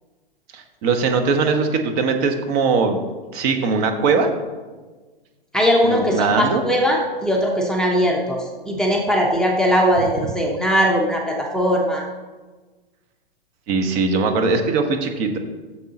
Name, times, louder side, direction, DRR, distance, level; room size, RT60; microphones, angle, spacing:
voice 1, 0.5-3.0 3.3-4.3 5.8-6.6 13.7-15.4, right 4 dB, 40° right, 5 dB, 1.2 m, -20 dB
voice 2, 5.5-12.0, equal, ahead, -2 dB, 0.9 m, -20 dB
13.0 x 7.2 x 2.9 m, 1.3 s
hypercardioid pair, 120°, 30 cm